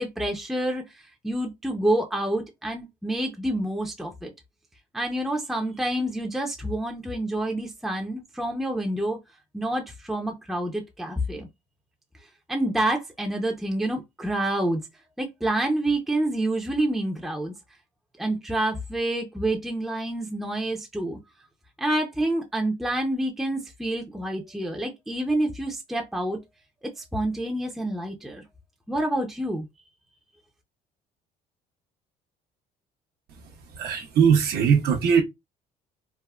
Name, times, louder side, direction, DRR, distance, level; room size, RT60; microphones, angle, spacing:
voice 1, 0.0-4.3 4.9-9.2 9.5-11.5 12.5-14.8 15.2-17.5 18.2-21.2 21.8-26.4 27.0-28.4 28.9-29.7, right 1 dB, ahead, 0.5 m, -28 dB
voice 2, 33.7-35.2, right 7 dB, 70° right, 0.6 m, -20 dB
3.4 x 2.0 x 2.2 m
cardioid pair, 110°, 17 cm